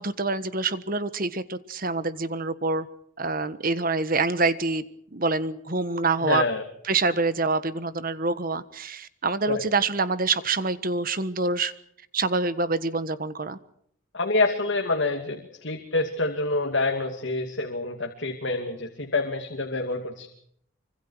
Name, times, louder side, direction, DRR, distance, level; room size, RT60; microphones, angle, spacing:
voice 1, 0.0-2.9 3.2-4.8 5.1-6.4 6.8-11.7 12.1-13.6, right 3 dB, 45° right, 13 dB, 1.4 m, -26 dB
voice 2, 6.2-6.6 9.5-9.6 14.1-20.3, left 3 dB, 65° left, 3 dB, 2.6 m, -27 dB
25.5 x 25.5 x 4.8 m, 0.69 s
head